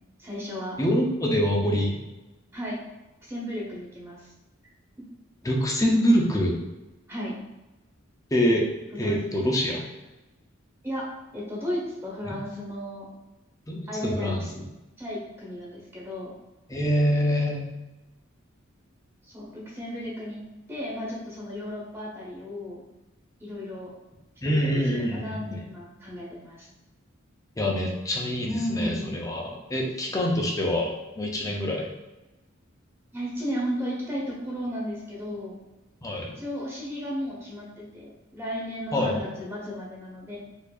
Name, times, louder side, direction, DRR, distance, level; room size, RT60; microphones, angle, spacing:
voice 1, 0.2-0.8 2.5-2.8 3.2-4.3 7.1-7.4 9.0-9.4 10.8-13.1 13.9-14.5 15.0-16.3 19.2-22.8 23.4-23.9 24.4-26.7 28.4-29.1 30.1-30.2 33.1-35.6 36.3-40.4, equal, 15° right, -4 dB, 0.9 m, -34 dB
voice 2, 0.8-2.0 5.4-6.6 8.3-8.7 9.0-9.8 12.3-12.4 13.7-14.4 16.7-17.7 24.4-25.6 27.6-31.9 36.0-36.3 38.9-39.3, equal, 15° left, 0 dB, 0.5 m, -25 dB
4.4 x 2.6 x 2.3 m, 1.0 s
head